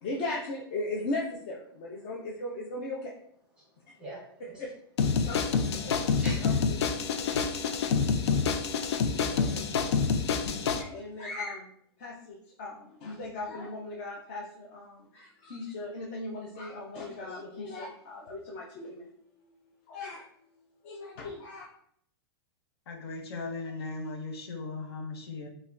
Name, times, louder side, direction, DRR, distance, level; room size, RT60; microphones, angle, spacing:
voice 1, 0.0-3.1 4.4-4.7 5.3-5.4 6.2-7.3 10.8-11.7 12.0-19.1 19.9-20.2 20.8-21.7, left 2 dB, 25° left, -2 dB, 0.3 m, -38 dB
sound 1, 5.0-10.8, left 5 dB, 90° left, 0.5 m, -27 dB
voice 2, 5.1-6.6 7.6-10.7, right 1 dB, 5° right, -5 dB, 0.7 m, -48 dB
voice 3, 22.9-25.5, left 3 dB, 70° left, 2 dB, 0.8 m, -38 dB
5.3 x 2.2 x 2.4 m, 0.67 s
supercardioid pair, 180°, 14 cm